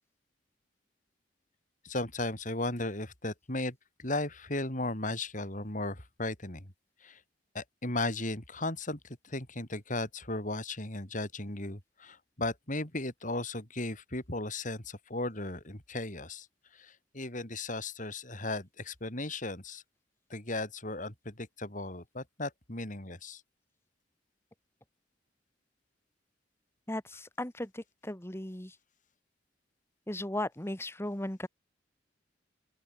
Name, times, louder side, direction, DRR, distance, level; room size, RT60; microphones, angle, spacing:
voice 1, 1.8-6.7 7.0-7.2 7.5-16.5 16.8-19.8 20.3-23.4, left 2 dB, 45° left, 5.8 m, -36 dB
voice 2, 26.9-28.7 30.1-31.5, left 1 dB, 15° left, 1.8 m, -36 dB
open air
head